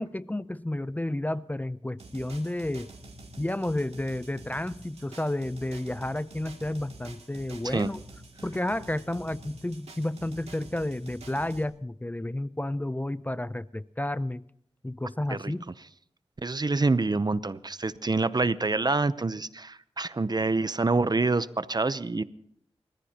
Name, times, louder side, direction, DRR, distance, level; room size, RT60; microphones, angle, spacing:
voice 1, 0.0-2.9 3.4-8.0 8.4-14.4 14.8-15.7, left 1 dB, 15° left, 0.5 m, -31 dB
sound 1, 2.0-11.6, right 2 dB, 85° right, 2.5 m, -48 dB
voice 2, 16.4-22.2, right 3 dB, 40° right, 0.7 m, -26 dB
29.0 x 15.0 x 2.9 m
cardioid pair, 45°, 11 cm